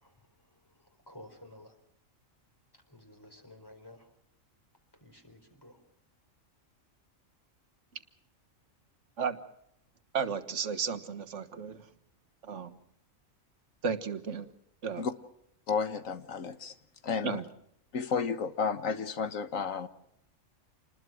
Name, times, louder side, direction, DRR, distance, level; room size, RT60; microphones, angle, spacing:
voice 1, 0.0-1.8 2.7-4.2 4.9-5.8, left 1 dB, 15° left, 4.5 m, -54 dB
voice 2, 10.1-11.9 12.4-12.7 13.8-14.5 14.8-15.0 17.2-17.4, right 6 dB, 65° right, 1.7 m, -33 dB
voice 3, 15.7-16.7 17.0-17.4 17.9-19.9, left 5 dB, 75° left, 1.6 m, -32 dB
28.0 x 20.0 x 6.3 m
omnidirectional pair, 1.4 m